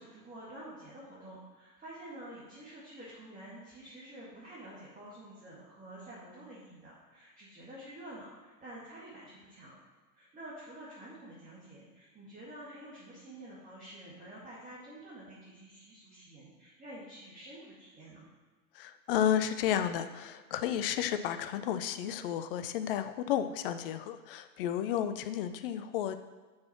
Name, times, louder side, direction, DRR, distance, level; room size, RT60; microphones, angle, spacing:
voice 1, 0.0-9.8 10.1-18.2, right 1 dB, 15° right, -8 dB, 2.3 m, -49 dB
voice 2, 18.7-26.2, left 10 dB, 35° left, 10 dB, 0.5 m, -32 dB
6.2 x 6.0 x 6.2 m, 1.4 s
figure-of-eight pair, 95°, 49 cm